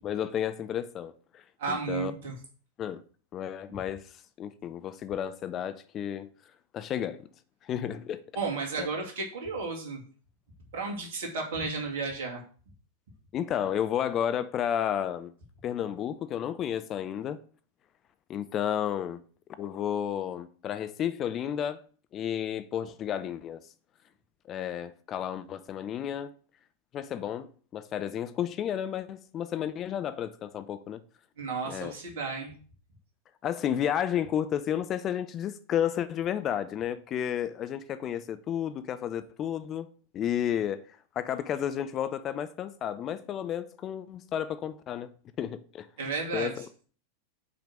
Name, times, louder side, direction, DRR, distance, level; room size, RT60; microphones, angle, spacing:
voice 1, 0.0-2.1 2.8-3.0 3.3-6.3 6.7-7.2 7.6-8.2 8.8-8.9 13.3-15.3 15.6-17.4 18.3-19.2 19.6-21.8 22.1-23.6 24.5-26.3 26.9-27.5 27.7-31.0 31.6-32.0 33.4-39.9 40.1-45.1 45.4-45.9 46.3-46.7, left 9 dB, 30° left, 0.6 m, -32 dB
voice 2, 1.6-2.3 3.7-3.8 8.3-10.0 10.7-12.4 31.4-32.5 46.0-46.6, right 4 dB, 55° right, 2.6 m, -33 dB
6.0 x 5.1 x 6.4 m
figure-of-eight pair, 90°, 0 cm